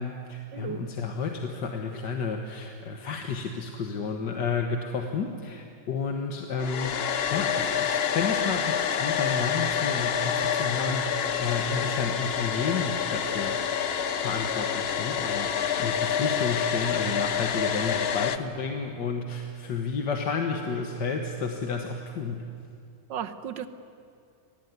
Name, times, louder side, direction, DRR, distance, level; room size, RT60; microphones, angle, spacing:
voice 1, 0.0-13.6 14.2-22.5, left 5 dB, 75° left, 3 dB, 2.0 m, -31 dB
voice 2, 0.5-0.9 23.1-23.7, right 9 dB, 90° right, 10 dB, 1.7 m, -34 dB
Domestic sounds home sounds, 6.6-18.4, left 8 dB, 50° left, 0.7 m, -28 dB
24.0 x 19.0 x 9.7 m, 2.4 s
omnidirectional pair, 1.9 m